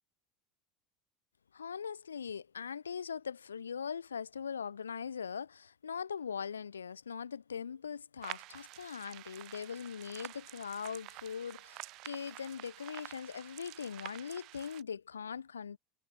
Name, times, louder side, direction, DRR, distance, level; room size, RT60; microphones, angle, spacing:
voice 1, 1.5-15.8, left 7 dB, 85° left, 0.7 m, -41 dB
sound 1, 8.2-14.8, right 20 dB, 55° right, 2.1 m, -49 dB
hypercardioid pair, 75°, 0 cm